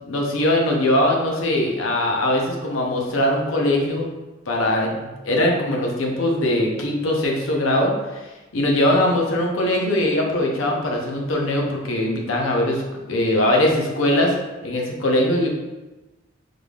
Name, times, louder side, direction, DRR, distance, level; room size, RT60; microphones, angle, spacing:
voice 1, 0.0-4.1 4.5-12.8 13.1-14.4 14.6-15.5, left 1 dB, 85° left, 0 dB, 0.7 m, -21 dB
3.8 x 3.3 x 2.4 m, 1.1 s
head